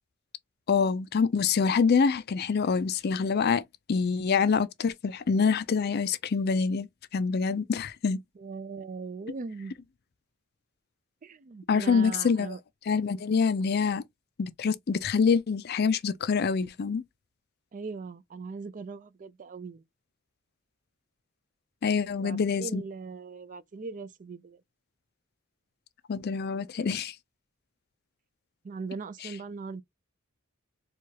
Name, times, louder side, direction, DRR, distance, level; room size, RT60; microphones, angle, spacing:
voice 1, 0.7-3.6 3.9-8.2 11.7-12.6 12.8-14.0 14.4-17.0 21.8-22.8 26.1-27.2 29.2-29.3, left 5 dB, 50° left, 0.4 m, -26 dB
voice 2, 8.4-9.7 11.2-12.6 17.7-19.8 22.2-24.6 28.6-29.8, right 4 dB, 40° right, 0.4 m, -39 dB
4.6 x 2.3 x 2.8 m
head